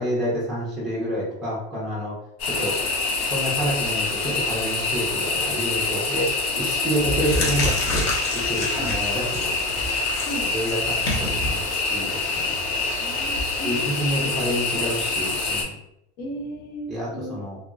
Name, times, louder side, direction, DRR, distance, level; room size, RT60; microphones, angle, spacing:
voice 1, 0.0-2.1 2.5-2.7 3.2-6.3 6.5-8.1 8.3-9.8 10.5-12.5 13.6-15.8 16.9-17.6, equal, ahead, -6 dB, 0.5 m, -28 dB
sound 1, 2.4-15.6, left 3 dB, 80° left, 1.3 m, -26 dB
sound 2, 6.2-6.5 6.9-13.4, left 1 dB, 35° left, 0.8 m, -29 dB
voice 2, 13.0-13.8 16.2-17.4, right 1 dB, 55° left, -1 dB, 1.0 m, -35 dB
2.9 x 2.8 x 2.4 m, 0.78 s
cardioid pair, 170°, 30 cm